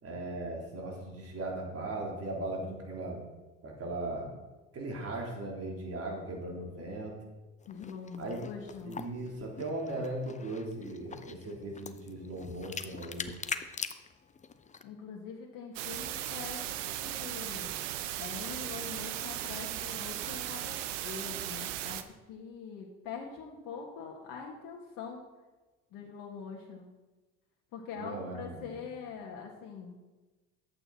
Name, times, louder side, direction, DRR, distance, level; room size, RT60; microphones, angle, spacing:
voice 1, 0.0-3.2 3.6-4.3 4.7-7.2 8.2-8.4 8.8-13.3 27.9-28.8, right 2 dB, 40° right, 0 dB, 3.6 m, -38 dB
sound 1, 7.6-14.8, left 5 dB, 20° left, 0.7 m, -43 dB
voice 2, 7.7-9.0 14.8-17.8 18.2-25.2 25.9-26.9 27.7-30.1, left 6 dB, 60° left, -1 dB, 1.8 m, -44 dB
sound 2, 15.8-22.0, right 12 dB, 80° right, 0.8 m, -37 dB
12.0 x 8.3 x 4.3 m, 1.2 s
hypercardioid pair, 70°, 37 cm